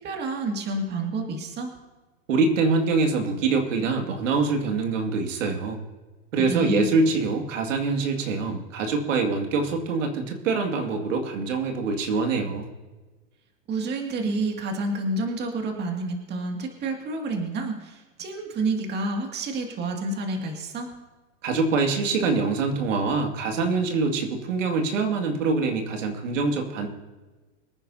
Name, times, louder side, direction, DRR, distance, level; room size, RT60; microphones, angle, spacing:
voice 1, 0.0-1.7 6.5-6.9 13.7-20.9, right 2 dB, 25° right, 2 dB, 2.2 m, -29 dB
voice 2, 2.3-5.8 6.3-12.7 21.4-26.9, right 4 dB, 80° right, 3 dB, 2.3 m, -24 dB
24.5 x 9.7 x 2.8 m, 1.2 s
hypercardioid pair, 135°, 37 cm